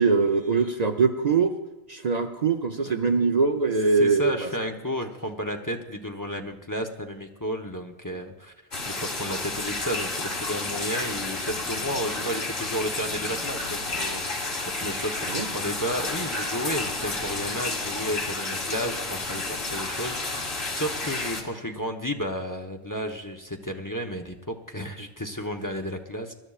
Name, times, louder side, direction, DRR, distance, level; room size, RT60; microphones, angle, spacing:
voice 1, 0.0-1.6 1.9-4.5 15.3-15.5, right 4 dB, 45° right, 5 dB, 0.7 m, -22 dB
voice 2, 3.9-8.5 8.9-26.3, equal, 20° left, 3 dB, 0.8 m, -32 dB
sound 1, 8.7-21.4, left 2 dB, 85° left, 2.1 m, -31 dB
24.0 x 12.5 x 2.4 m, 1.2 s
omnidirectional pair, 1.0 m